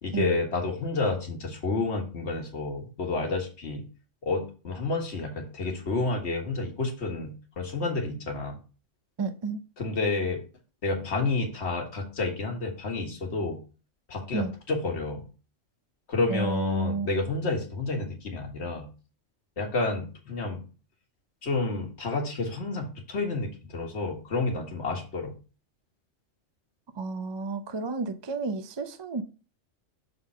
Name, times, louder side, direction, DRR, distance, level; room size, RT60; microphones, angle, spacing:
voice 1, 0.0-3.8 4.2-8.6 9.8-10.4 10.8-13.6 14.1-15.2 16.1-18.9 19.6-20.6 21.4-25.3, left 3 dB, 60° left, 1.7 m, -30 dB
voice 2, 9.2-9.6 14.3-14.5 16.3-17.1 26.9-29.2, right 3 dB, 45° right, 0.3 m, -31 dB
6.7 x 3.8 x 5.4 m
omnidirectional pair, 1.3 m